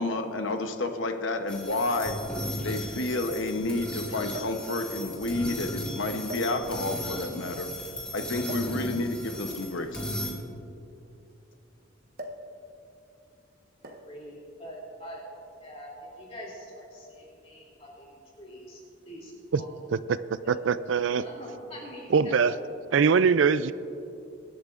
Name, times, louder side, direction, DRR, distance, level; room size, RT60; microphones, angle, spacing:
voice 1, 0.0-2.2 2.6-7.7 8.1-10.0, left 2 dB, 75° left, 5 dB, 0.9 m, -30 dB
sound 1, 1.5-10.3, left 1 dB, 5° left, 1.7 m, -36 dB
sound 2, 4.3-4.7 5.5-5.7 6.3-7.0 8.4-8.8 9.9-11.5 12.2-12.5 12.8-13.1 13.8-14.2 15.2-15.4, equal, 50° right, 1.2 m, -42 dB
voice 2, 14.0-15.2 15.6-15.9 16.2-19.7 20.1-20.2 21.2-22.6, equal, 30° left, -4 dB, 2.9 m, -44 dB
voice 3, 19.9-21.2 22.1-22.5 22.9-23.7, right 6 dB, 70° right, 15 dB, 0.4 m, -23 dB
24.0 x 11.5 x 2.5 m, 2.7 s
head